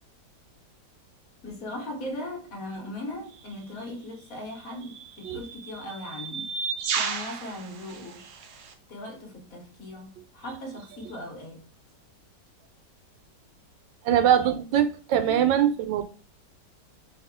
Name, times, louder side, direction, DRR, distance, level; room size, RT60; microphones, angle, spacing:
voice 1, 1.4-6.5 7.0-8.2 8.9-11.6, left 1 dB, 55° left, 1.4 m, -38 dB
sound 1, 3.3-3.5 4.5-8.7, right 5 dB, 70° right, 1.2 m, -34 dB
voice 2, 14.0-16.0, right 10 dB, 90° right, 1.3 m, -22 dB
4.2 x 3.1 x 3.6 m
omnidirectional pair, 1.9 m